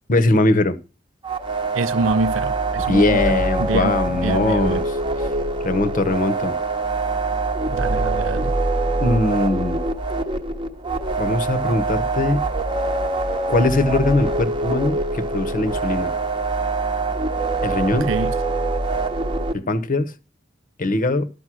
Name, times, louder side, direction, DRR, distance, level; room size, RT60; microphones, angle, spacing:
voice 1, 0.1-0.8 2.8-5.0 5.6-6.5 9.0-9.8 11.2-12.4 13.5-16.1 17.6-18.1 19.5-20.1 20.8-21.3, left 2 dB, 45° left, 0.9 m, -21 dB
sound 1, 1.2-19.5, right 2 dB, 25° right, 1.0 m, -24 dB
voice 2, 1.7-4.8 7.7-8.6 17.9-18.3, right 3 dB, 70° right, 0.6 m, -26 dB
12.5 x 5.3 x 6.1 m
head